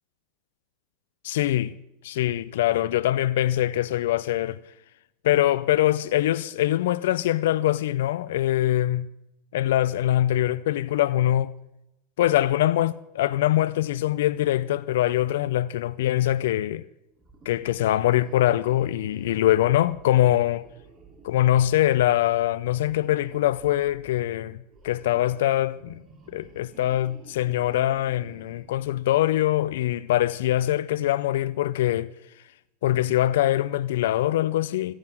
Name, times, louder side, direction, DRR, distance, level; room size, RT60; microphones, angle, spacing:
voice 1, 1.2-1.7 2.0-4.6 5.2-9.1 9.5-11.5 12.2-16.8 17.5-20.6 21.2-24.6 24.8-25.9 26.3-32.1 32.8-34.9, left 13 dB, 70° left, 0.5 m, -23 dB
sound 1, 17.2-29.7, right 3 dB, 30° right, 3.6 m, -52 dB
14.5 x 11.0 x 7.7 m
hypercardioid pair, 95°, 0 cm